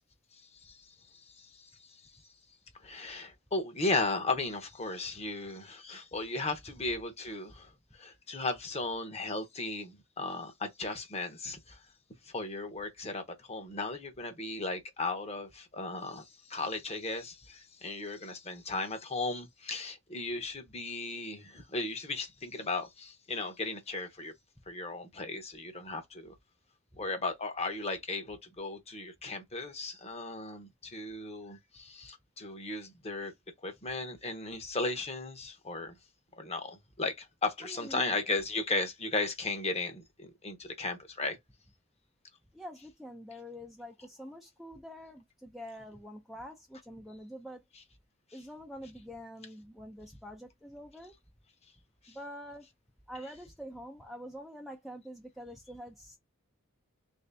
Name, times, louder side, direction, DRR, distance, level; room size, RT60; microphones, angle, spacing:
voice 1, 1.3-1.7 2.8-7.7 8.0-11.8 12.3-24.3 24.7-26.3 27.0-33.3 33.6-35.9 36.4-41.4 52.1-52.2, left 3 dB, 30° left, 0.9 m, -36 dB
voice 2, 37.6-38.2 42.5-47.6 48.3-51.2 52.1-52.7 53.1-56.2, equal, ahead, 0.5 m, -46 dB
3.1 x 2.7 x 3.3 m
head